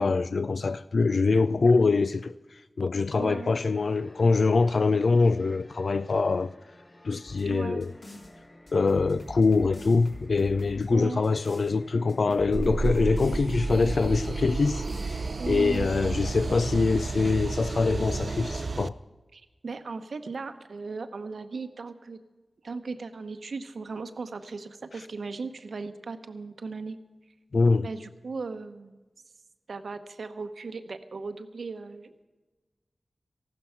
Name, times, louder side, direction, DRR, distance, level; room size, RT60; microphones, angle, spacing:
voice 1, 0.0-6.5 7.0-7.9 8.7-19.0 27.5-27.9, left 4 dB, 75° left, 0.3 m, -24 dB
voice 2, 3.2-3.6 7.5-7.8 10.9-11.2 15.4-15.9 19.3-22.2 22.6-27.0 27.8-29.0 29.7-32.1, right 4 dB, 85° right, 0.9 m, -37 dB
sound 1, 3.4-18.7, left 2 dB, 35° left, 1.2 m, -53 dB
sound 2, 7.3-8.3 8.7-11.7 12.1-14.3 14.7-15.2 15.5-15.9, left 1 dB, 60° left, 3.1 m, -43 dB
sound 3, 12.5-18.9, right 3 dB, 60° right, 0.5 m, -31 dB
14.5 x 12.0 x 5.7 m
wide cardioid pair, 70°, 0 cm